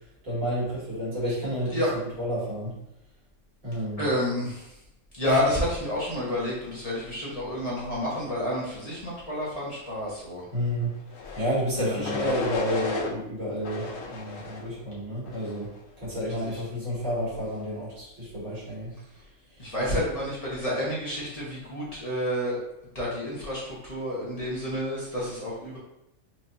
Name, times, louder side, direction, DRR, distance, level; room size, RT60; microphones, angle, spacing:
voice 1, 0.2-2.7 3.6-4.1 10.5-11.0 11.4-15.7 16.0-18.9, equal, 85° right, -8 dB, 2.1 m, -30 dB
voice 2, 4.0-4.7 5.2-10.4 11.8-12.2 16.4-16.5 19.6-22.6 22.9-25.8, left 1 dB, 30° left, -7 dB, 1.0 m, -29 dB
sound 1, 11.1-11.5 12.0-13.1 13.6-14.7 15.2-15.7, left 4 dB, 75° left, 1.0 m, -34 dB
4.5 x 2.6 x 2.6 m, 0.86 s
omnidirectional pair, 1.4 m